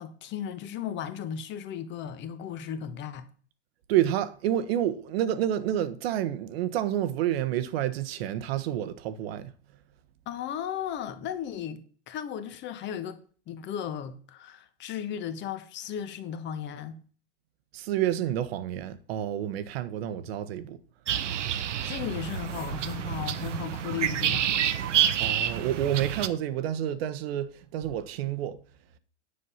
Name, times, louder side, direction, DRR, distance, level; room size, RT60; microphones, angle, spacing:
voice 1, 0.0-3.3 10.3-13.2 13.5-17.0 21.8-24.5, left 9 dB, 30° left, 1.2 m, -35 dB
voice 2, 3.9-9.5 17.7-20.8 25.2-28.6, right 11 dB, 60° right, 1.2 m, -29 dB
sound 1, 21.1-26.3, right 10 dB, 85° right, 1.0 m, -28 dB
9.9 x 6.6 x 5.6 m
hypercardioid pair, 125°, 35 cm